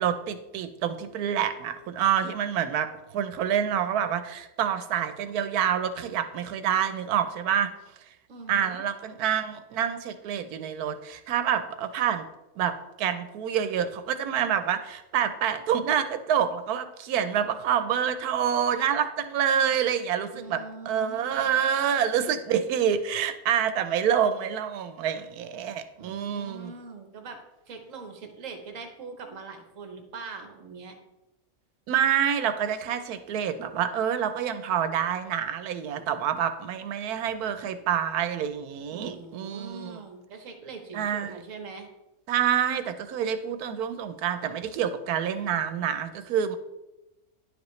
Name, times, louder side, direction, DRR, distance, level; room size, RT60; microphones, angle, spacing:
voice 1, 0.0-7.7 8.5-12.2 12.6-26.7 31.9-40.0 40.9-41.4 42.3-46.6, right 8 dB, 85° right, 11 dB, 1.2 m, -27 dB
voice 2, 8.3-8.8 20.3-21.5 26.0-30.9 38.9-41.9, right 4 dB, 60° right, 5 dB, 1.3 m, -42 dB
10.0 x 5.1 x 3.1 m, 0.97 s
omnidirectional pair, 1.6 m